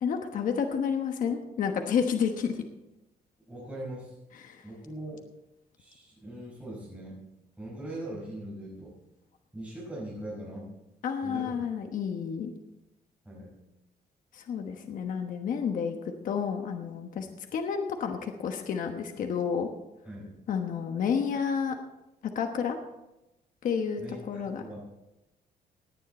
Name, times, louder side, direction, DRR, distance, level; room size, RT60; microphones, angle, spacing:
voice 1, 0.0-2.6 4.4-4.6 11.0-12.5 14.3-17.3 17.5-19.7 20.5-21.7 22.3-22.8 23.6-24.6, left 7 dB, 55° left, 5 dB, 1.2 m, -30 dB
voice 2, 3.5-4.1 4.6-5.2 5.8-7.2 7.6-8.9 9.5-10.7 11.2-11.6 13.2-13.5 20.0-20.3 24.0-24.8, right 1 dB, 10° right, -10 dB, 5.6 m, -40 dB
18.0 x 9.4 x 4.3 m, 0.93 s
cardioid pair, 145°, 16 cm